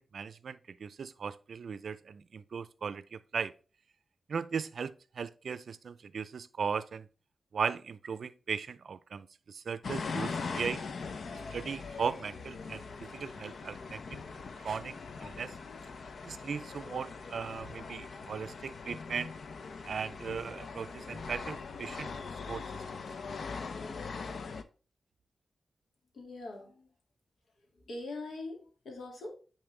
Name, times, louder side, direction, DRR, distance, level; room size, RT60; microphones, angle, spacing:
voice 1, 0.0-3.5 4.3-7.1 7.5-10.8 11.3-14.2 14.6-14.9 15.2-15.6 16.2-19.3 19.8-22.1 22.5-22.8, right 6 dB, 70° right, 0.5 m, -38 dB
sound 1, 9.8-24.6, left 4 dB, 65° left, 0.6 m, -41 dB
voice 2, 26.1-26.9 27.7-29.3, left 2 dB, 80° left, 2.3 m, -42 dB
9.5 x 4.3 x 3.3 m
wide cardioid pair, 130°, 0 cm